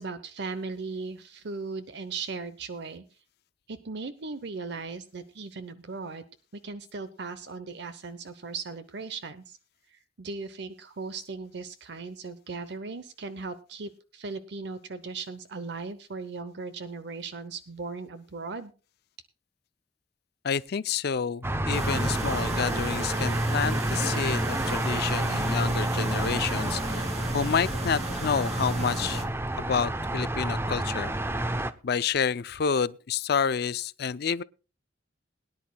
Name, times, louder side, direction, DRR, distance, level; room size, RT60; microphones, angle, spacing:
voice 1, 0.0-3.0 3.7-6.2 6.6-9.6 9.9-18.7, right 4 dB, 65° right, 0.8 m, -38 dB
voice 2, 20.4-27.1 27.3-29.2 29.6-31.1 31.8-34.4, left 6 dB, 60° left, 0.5 m, -29 dB
sound 1, 21.4-31.7, right 1 dB, 15° right, 0.6 m, -29 dB
sound 2, 21.7-29.2, right 1 dB, 35° right, 2.3 m, -35 dB
21.5 x 10.5 x 2.3 m
head